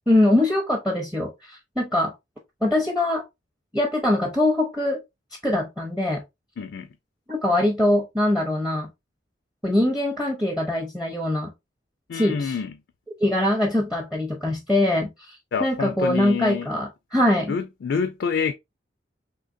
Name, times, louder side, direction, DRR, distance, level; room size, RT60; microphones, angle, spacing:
voice 1, 0.1-2.1 2.6-3.2 3.7-5.0 5.4-6.2 7.3-8.9 9.6-11.5 12.1-12.5 13.2-17.6, left 1 dB, 5° right, 0.6 m, -23 dB
voice 2, 6.6-6.9 12.1-12.7 15.5-16.7 17.5-18.5, left 6 dB, 65° left, 0.3 m, -27 dB
3.8 x 2.8 x 2.5 m
head